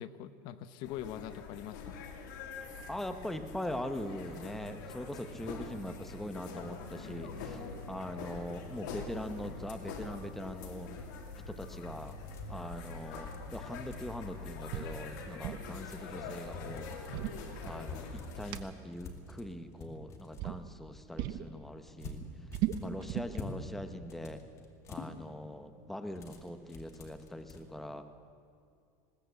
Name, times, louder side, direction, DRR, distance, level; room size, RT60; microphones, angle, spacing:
voice 1, 0.0-2.0, left 11 dB, 50° left, 13 dB, 0.8 m, -43 dB
sound 1, 0.8-18.5, left 4 dB, 90° left, 3.0 m, -44 dB
voice 2, 2.9-7.6 7.9-10.9 11.5-12.2 12.5-17.1 17.6-22.2 22.8-24.4 24.9-28.1, left 1 dB, 5° left, 8 dB, 1.0 m, -42 dB
sound 2, 12.0-14.3 15.1-16.1 16.5-17.4 17.8-20.5 22.0-23.6 23.9-25.1 26.1-27.6, left 3 dB, 30° left, 2.3 m, -47 dB
sound 3, 14.7-14.9 15.2-15.7 16.8-18.1 18.5-18.6 19.7-20.0 20.4-20.6 21.2-21.5 21.8-23.4, right 13 dB, 55° right, 1.0 m, -36 dB
20.5 x 18.0 x 8.0 m, 2.5 s
supercardioid pair, 155°, 10 cm